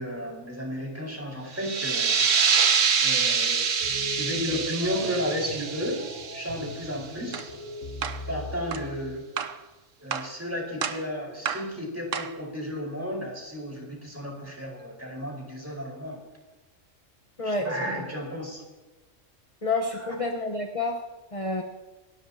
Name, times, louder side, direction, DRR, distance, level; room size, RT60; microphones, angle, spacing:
voice 1, 0.0-2.2 2.5-2.6 3.0-3.6 4.2-6.0 6.3-7.5 8.3-9.2 10.0-16.2 17.4-18.6 19.9-20.1, equal, 10° right, -1 dB, 5.1 m, -33 dB
sound 1, 1.5-6.9, right 6 dB, 60° right, 1.2 m, -25 dB
sound 2, 3.8-9.1, left 1 dB, 85° left, 3.6 m, -40 dB
sound 3, 7.3-7.5 8.0-8.2 8.7-8.9 9.4-9.6 10.1-10.3 10.8-11.1 11.5-11.7 12.1-12.4, right 7 dB, 80° right, 1.3 m, -32 dB
voice 2, 19.6-21.0 21.3-21.6, left 3 dB, 30° left, 3 dB, 1.2 m, -28 dB
29.5 x 12.5 x 2.9 m, 1.2 s
omnidirectional pair, 1.3 m